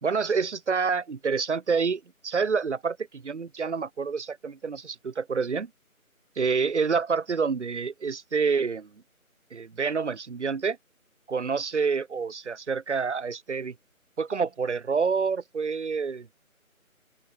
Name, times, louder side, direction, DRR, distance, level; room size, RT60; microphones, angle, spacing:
voice 1, 0.0-5.7 6.4-8.9 9.5-10.8 11.3-13.7 14.2-16.3, right 5 dB, 55° right, 0.8 m, -28 dB
open air
figure-of-eight pair, 165°, 43 cm